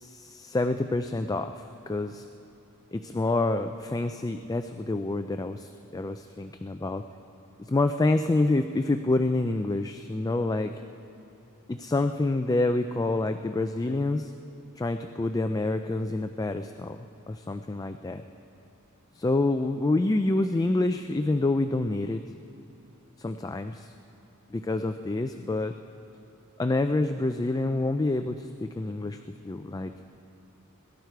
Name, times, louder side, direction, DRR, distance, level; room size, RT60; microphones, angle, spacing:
voice 1, 0.0-2.2 2.9-7.0 7.6-10.7 11.7-14.3 14.8-18.2 19.1-22.2 23.2-23.9 24.5-25.7 26.6-29.9, left 2 dB, 15° left, 8 dB, 0.3 m, -27 dB
21.5 x 12.5 x 4.6 m, 3.0 s
head